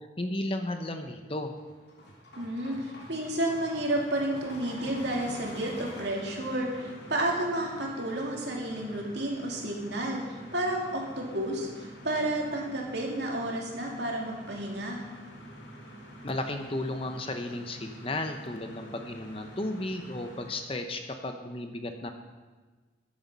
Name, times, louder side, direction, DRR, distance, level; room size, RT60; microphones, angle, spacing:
voice 1, 0.2-1.5 16.2-22.1, left 1 dB, 30° left, 6 dB, 0.9 m, -34 dB
sound 1, 1.4-20.8, equal, 60° left, 2.9 m, -46 dB
voice 2, 2.4-15.0, right 1 dB, 60° right, -1 dB, 2.7 m, -31 dB
13.5 x 9.3 x 5.6 m, 1.3 s
head